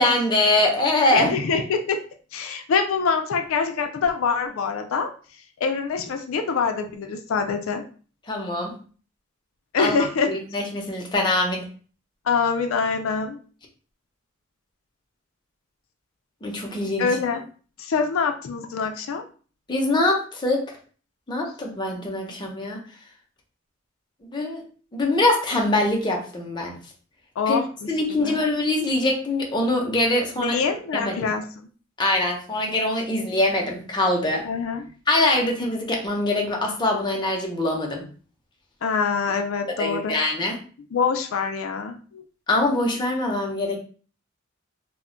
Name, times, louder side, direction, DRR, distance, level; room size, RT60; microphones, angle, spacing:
voice 1, 0.0-1.3 8.3-8.8 9.8-10.0 10.3-11.6 16.4-17.1 19.7-20.6 21.3-22.8 24.3-24.6 24.9-26.7 27.5-27.6 27.9-30.6 30.9-31.3 32.0-34.5 35.1-38.0 39.7-40.6 42.5-43.8, left 2 dB, 20° left, 0 dB, 0.6 m, -23 dB
voice 2, 1.1-2.0 2.3-5.1 5.6-7.8 9.7-10.3 12.3-13.4 17.0-17.4 17.8-19.2 27.4-28.4 30.4-31.4 34.4-34.9 38.8-40.1 40.9-42.2, left 5 dB, 85° left, 6 dB, 0.4 m, -25 dB
2.1 x 2.1 x 3.7 m, 0.40 s
head